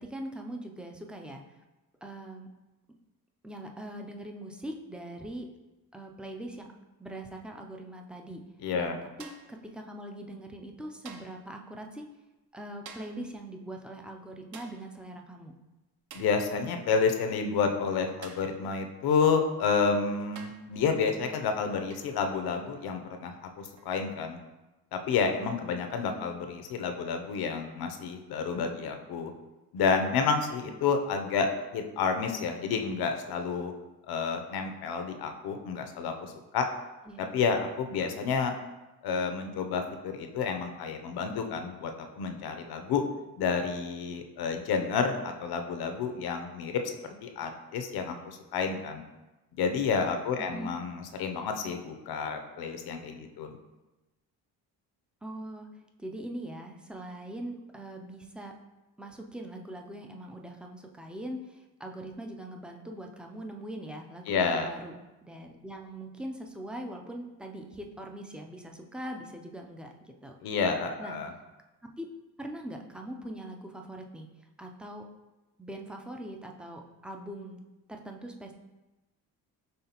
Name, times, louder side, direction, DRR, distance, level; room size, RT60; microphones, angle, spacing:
voice 1, 0.0-1.4 2.0-2.5 3.4-5.5 5.9-6.7 7.0-8.4 8.7-12.0 12.5-15.5 26.2-26.3 37.1-37.3 50.4-50.8 55.2-55.7 56.0-58.5 59.0-65.0 65.2-70.4 71.0-71.2 72.0-72.1 72.4-74.3 74.6-75.1 75.6-77.6 77.9-78.5, right 1 dB, 5° right, 2 dB, 0.3 m, -42 dB
voice 2, 8.6-9.0 16.1-24.4 24.9-29.3 29.7-33.7 34.1-36.6 37.2-38.6 39.0-43.0 43.4-46.8 47.2-49.0 49.5-53.6 64.3-64.7 70.4-71.3, left 5 dB, 75° left, 5 dB, 0.6 m, -30 dB
sound 1, 9.2-9.6 11.1-11.5 12.9-13.3 14.5-14.9 16.1-16.4 18.2-18.6 19.6-19.7 20.4-20.7 21.9-22.2 23.8-24.0, right 5 dB, 50° right, 0.6 m, -48 dB
5.6 x 3.3 x 2.8 m, 1.1 s
cardioid pair, 110°, 38 cm